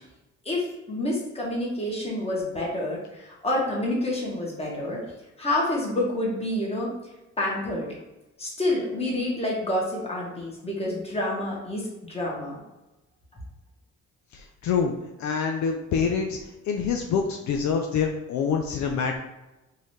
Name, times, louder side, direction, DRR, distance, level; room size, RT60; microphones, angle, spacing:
voice 1, 0.4-5.1 5.4-6.9 7.4-7.9 8.4-12.6, left 1 dB, 20° left, -3 dB, 1.3 m, -28 dB
voice 2, 14.6-14.9 15.2-16.4 16.7-19.2, left 6 dB, 70° left, 3 dB, 0.5 m, -25 dB
3.8 x 2.7 x 3.1 m, 1.0 s
cardioid pair, 90°, 30 cm